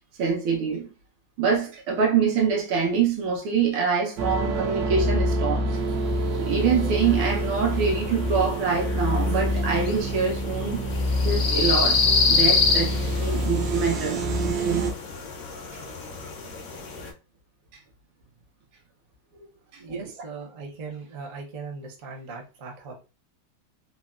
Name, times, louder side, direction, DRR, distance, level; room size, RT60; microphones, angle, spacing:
voice 1, 0.2-0.9 1.4-5.8 6.4-10.9 11.2-12.0 12.3-14.9 19.7-20.0, right 6 dB, 90° right, 1.6 m, -25 dB
sound 1, 4.2-14.9, equal, 70° right, 1.1 m, -26 dB
sound 2, 6.3-17.1, left 4 dB, 85° left, 0.7 m, -28 dB
voice 2, 19.8-22.9, right 4 dB, 55° right, 0.9 m, -38 dB
3.9 x 2.1 x 2.3 m
omnidirectional pair, 2.2 m